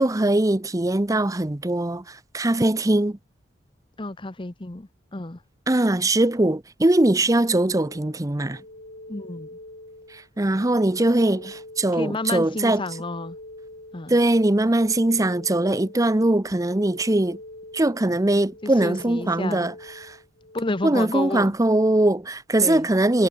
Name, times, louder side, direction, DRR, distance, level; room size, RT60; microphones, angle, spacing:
voice 1, 0.0-3.2 5.7-8.6 10.1-12.8 14.1-17.4 17.7-20.2 20.8-23.3, right 1 dB, 20° right, 0.7 m, -21 dB
voice 2, 4.0-5.4 9.1-9.5 11.9-13.4 13.9-14.2 18.6-19.7 20.5-21.5 22.6-22.9, left 2 dB, 25° left, 0.9 m, -31 dB
sound 1, 7.8-20.9, left 1 dB, 60° left, 5.3 m, -44 dB
head